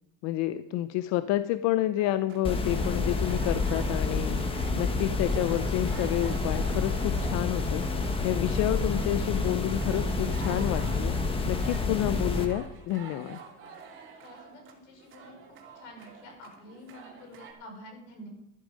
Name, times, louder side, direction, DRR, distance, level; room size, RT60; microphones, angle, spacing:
voice 1, 0.2-7.8 8.2-11.2 11.5-13.4, left 14 dB, 60° left, 13 dB, 0.6 m, -29 dB
sound 1, 2.0-17.5, right 5 dB, 40° right, 2.8 m, -49 dB
sound 2, 2.4-12.5, left 3 dB, 15° left, 1.2 m, -29 dB
voice 2, 14.2-15.4 15.7-18.3, left 1 dB, 80° left, 3 dB, 5.3 m, -48 dB
13.0 x 12.0 x 5.2 m, 0.85 s
cardioid pair, 170°, 31 cm